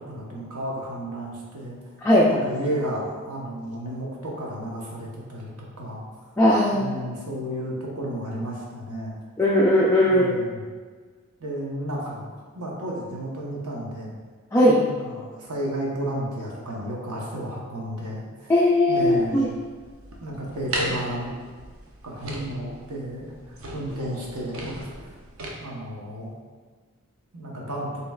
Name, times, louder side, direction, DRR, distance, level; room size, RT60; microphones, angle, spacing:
voice 1, 0.1-1.8 2.3-5.5 5.8-6.0 6.7-9.2 10.0-10.6 11.4-12.3 12.5-14.1 14.8-18.5 18.9-19.5 20.2-21.3 22.0-25.1 25.6-26.3 27.3-27.9, right 1 dB, 85° right, -3 dB, 0.9 m, -32 dB
voice 2, 6.4-6.9 9.4-10.4 14.5-14.8 18.5-19.5, left 1 dB, 10° left, -6 dB, 0.3 m, -18 dB
sound 1, 18.9-25.5, right 1 dB, 60° right, 0.6 m, -36 dB
5.5 x 3.0 x 2.3 m, 1.5 s
head